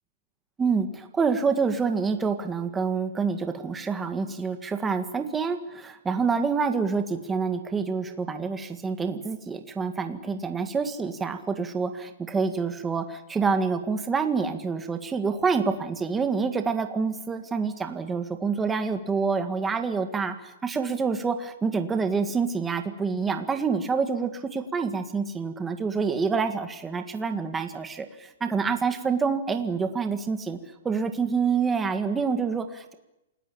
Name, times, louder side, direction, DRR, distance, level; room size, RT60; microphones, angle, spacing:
voice 1, 0.6-30.6 30.8-32.9, right 5 dB, 10° right, 7 dB, 1.9 m, -27 dB
28.0 x 19.5 x 8.7 m, 0.92 s
hypercardioid pair, 170°, 0 cm